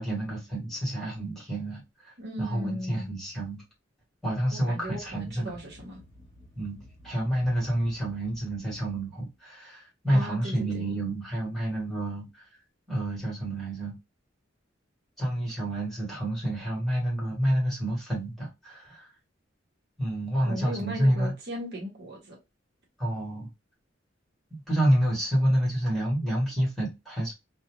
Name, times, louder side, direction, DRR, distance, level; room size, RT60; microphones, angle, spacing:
voice 1, 0.0-3.6 4.2-5.5 6.5-12.5 12.9-13.9 15.2-19.1 20.0-21.3 23.0-23.5 24.5-27.4, right 1 dB, ahead, 1.3 m, -29 dB
voice 2, 2.2-3.1 4.5-6.0 10.1-10.8 20.4-22.4, equal, 60° right, 1.0 m, -37 dB
sound 1, 4.8-9.4, left 1 dB, 40° left, 0.9 m, -53 dB
2.5 x 2.2 x 2.9 m
head